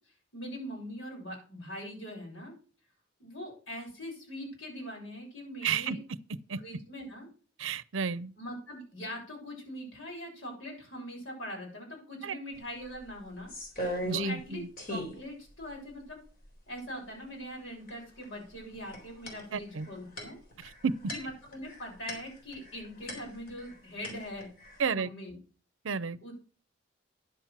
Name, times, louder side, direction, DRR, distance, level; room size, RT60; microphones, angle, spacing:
voice 1, 0.3-2.5 3.2-6.0 6.6-7.3 8.4-13.5 14.1-14.6 14.9-16.2 16.7-20.4 21.1-24.5 24.9-25.3 26.2-26.3, equal, 85° left, 6.8 m, -42 dB
voice 2, 5.6-6.0 6.5-6.6 7.6-8.3 12.2-12.4 14.0-14.7 19.5-19.9 20.8-21.0 24.8-25.1 25.8-26.2, right 6 dB, 80° right, 0.6 m, -31 dB
sound 1, 12.5-12.6 12.9-14.5 14.8-15.2 15.7-15.8 16.1-16.8 17.9-18.2 18.5-23.7 24.0-24.8, equal, 50° left, 3.6 m, -39 dB
10.5 x 7.3 x 5.9 m
head